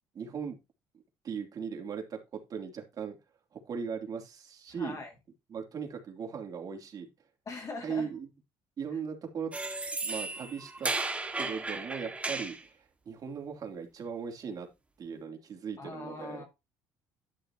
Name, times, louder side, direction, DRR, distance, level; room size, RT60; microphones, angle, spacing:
voice 1, 0.1-0.6 1.2-3.2 3.5-5.0 5.5-7.1 7.8-8.3 8.8-9.5 10.0-10.9 11.3-12.8 13.0-14.7 15.0-16.4, right 6 dB, 50° right, 3.1 m, -38 dB
voice 2, 4.8-5.1 7.5-8.1 15.8-16.4, left 3 dB, 40° left, 2.4 m, -41 dB
sound 1, 9.5-12.6, right 3 dB, 15° right, 1.9 m, -34 dB
12.0 x 6.6 x 2.9 m
supercardioid pair, 85°, 9 cm